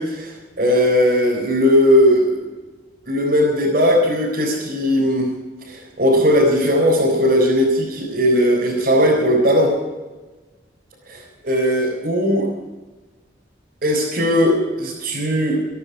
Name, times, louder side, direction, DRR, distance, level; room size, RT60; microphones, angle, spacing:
voice 1, 0.0-2.5 3.1-5.3 5.6-9.7 11.1-12.5 13.8-15.6, equal, 50° right, -5 dB, 4.3 m, -18 dB
25.5 x 10.5 x 4.8 m, 1.2 s
head